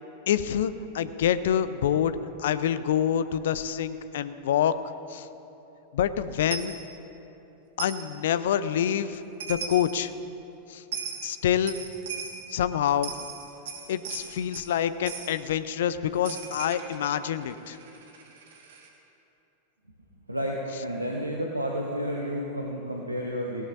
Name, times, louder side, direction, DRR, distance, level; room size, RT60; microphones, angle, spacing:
voice 1, 0.3-4.7 5.1-5.3 5.9-6.8 7.8-9.2 9.5-10.1 10.7-10.8 11.2-11.8 12.5-13.1 13.9-17.8, left 9 dB, 60° left, 14 dB, 0.5 m, -26 dB
Coin (dropping), 6.5-6.8 7.8-8.0 9.1-9.2 9.4-9.9 10.9-11.2 11.7-12.4 12.9-14.7 15.1-15.3 16.2-18.9, right 6 dB, 55° right, 1.7 m, -38 dB
voice 2, 20.3-23.7, equal, 85° right, -1 dB, 1.0 m, -31 dB
18.5 x 17.5 x 2.7 m, 2.9 s
figure-of-eight pair, 90°, 0 cm